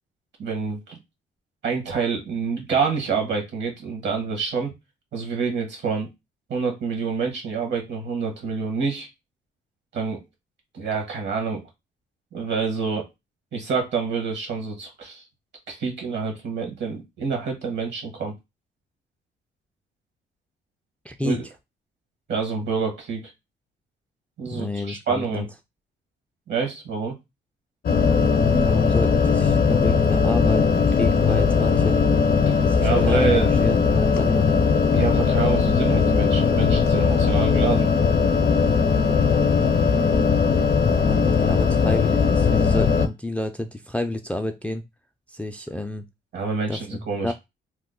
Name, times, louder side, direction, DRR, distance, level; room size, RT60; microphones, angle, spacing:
voice 1, 0.4-1.0 1.6-4.7 5.1-6.1 6.5-9.1 9.9-10.2 10.7-11.7 12.3-13.1 13.5-15.2 15.7-18.3 21.2-21.4 22.3-23.2 24.4-25.5 26.5-27.2 32.5-33.5 34.9-37.9 46.3-47.3, right 5 dB, 65° right, 1.3 m, -27 dB
voice 2, 21.0-21.4 24.5-25.4 28.4-32.0 32.7-34.6 40.8-44.8 45.3-46.0 46.7-47.3, left 1 dB, 5° left, 0.3 m, -30 dB
sound 1, 27.8-43.1, left 5 dB, 50° left, 0.6 m, -19 dB
2.8 x 2.1 x 3.7 m
cardioid pair, 90°, 20 cm